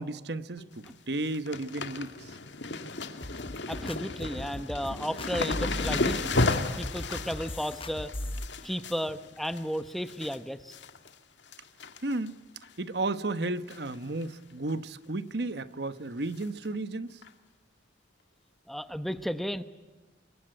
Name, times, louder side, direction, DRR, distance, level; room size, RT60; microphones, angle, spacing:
voice 1, 0.0-2.3 12.0-12.4 12.8-17.2, right 2 dB, 60° right, 1.1 m, -33 dB
sound 1, 0.6-0.9 1.1-10.4 10.7-11.1 11.5-12.3 12.6-12.7 13.7-14.0 14.2-14.3 14.7-14.8 16.4-16.5 17.2-17.3, left 2 dB, 75° left, 2.1 m, -34 dB
sound 2, 3.2-8.5, left 1 dB, 30° left, 1.0 m, -38 dB
voice 2, 3.7-6.4 6.8-8.1 8.6-10.8 18.7-19.6, equal, ahead, 0.9 m, -34 dB
27.0 x 23.0 x 9.0 m
head